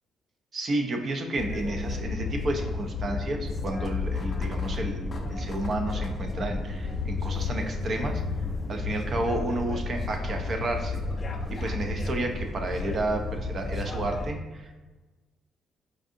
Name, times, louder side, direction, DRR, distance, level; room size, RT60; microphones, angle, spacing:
voice 1, 0.5-8.2 8.7-11.0 11.5-14.8, right 2 dB, 50° right, 4 dB, 0.5 m, -31 dB
sound 1, 1.4-14.3, left 3 dB, 35° left, 0.4 m, -32 dB
4.6 x 2.6 x 2.5 m, 1.2 s
cardioid pair, 90°, 0 cm